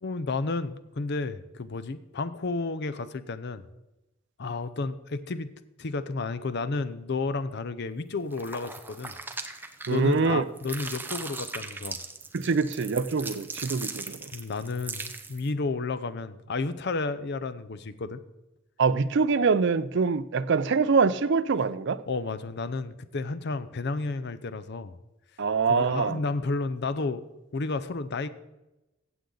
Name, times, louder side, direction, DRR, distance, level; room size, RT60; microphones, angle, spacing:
voice 1, 0.0-3.6 4.4-9.1 9.9-12.0 14.3-18.2 22.1-25.0 25.7-27.2 27.5-28.3, left 3 dB, 55° left, 12 dB, 0.6 m, -32 dB
sound 1, 8.3-10.3 10.6-15.5, right 3 dB, 10° right, 0.7 m, -39 dB
voice 2, 9.9-10.4 12.3-14.3 18.8-22.0 25.4-26.2, right 4 dB, 60° right, 13 dB, 0.5 m, -24 dB
15.0 x 7.9 x 3.9 m, 0.98 s
head